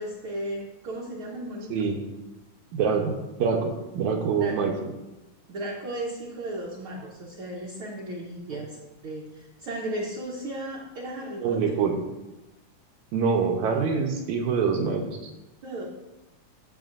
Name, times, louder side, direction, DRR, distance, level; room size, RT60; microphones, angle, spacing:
voice 1, 0.0-1.8 4.4-4.6 5.5-11.7 15.6-15.9, right 1 dB, 60° right, -3 dB, 1.5 m, -35 dB
voice 2, 1.7-2.0 2.7-4.7 8.5-8.6 11.4-12.0 13.1-15.3, right 5 dB, 75° right, 2 dB, 2.1 m, -25 dB
14.0 x 7.3 x 2.6 m, 1.0 s
omnidirectional pair, 3.6 m